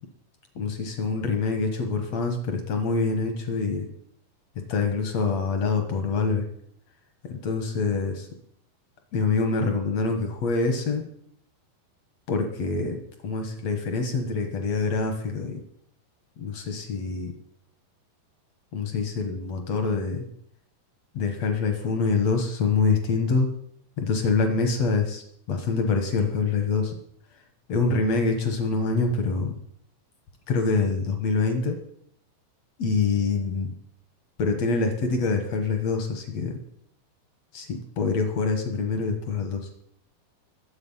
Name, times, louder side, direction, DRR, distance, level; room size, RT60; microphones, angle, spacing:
voice 1, 0.6-3.9 4.7-6.5 7.3-8.3 9.1-11.0 12.3-15.6 16.4-17.3 18.7-20.3 21.1-23.5 24.0-25.2 25.5-27.0 27.7-29.6 30.5-31.8 32.8-33.7 34.4-36.6 37.5-39.7, left 4 dB, 70° left, 5 dB, 1.6 m, -25 dB
22.5 x 8.0 x 5.7 m, 0.69 s
omnidirectional pair, 5.3 m